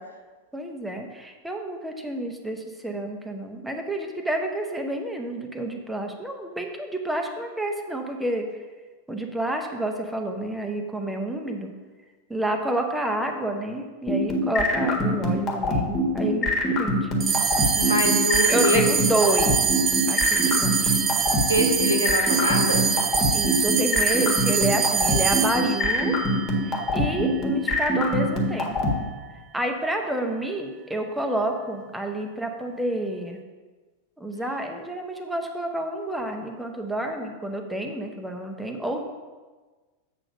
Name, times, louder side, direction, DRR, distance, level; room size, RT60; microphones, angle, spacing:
voice 1, 0.5-8.5 9.1-11.7 12.3-16.5 16.8-17.3 18.5-19.6 20.1-20.9 23.3-26.1 26.7-28.8 29.5-33.4 34.2-39.0, right 1 dB, 5° right, 3 dB, 0.9 m, -29 dB
sound 1, 14.1-28.9, left 1 dB, 30° left, 1.5 m, -23 dB
sound 2, 17.2-27.9, right 7 dB, 25° right, 0.3 m, -25 dB
voice 2, 17.8-18.8 21.5-22.9, equal, 85° left, 0 dB, 1.1 m, -24 dB
7.8 x 3.9 x 6.2 m, 1.3 s
figure-of-eight pair, 90°, 0 cm